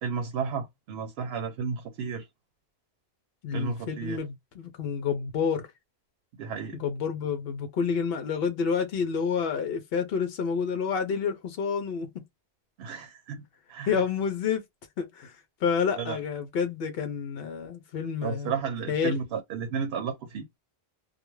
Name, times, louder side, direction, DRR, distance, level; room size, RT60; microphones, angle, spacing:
voice 1, 0.0-2.3 3.5-4.2 6.4-6.8 12.8-13.4 13.7-14.0 16.0-16.2 18.2-20.4, right 6 dB, 75° right, 0.8 m, -33 dB
voice 2, 3.4-5.6 6.8-12.1 13.8-14.6 15.0-18.5 18.9-19.2, left 6 dB, 70° left, 0.8 m, -29 dB
2.3 x 2.2 x 3.0 m
omnidirectional pair, 1.1 m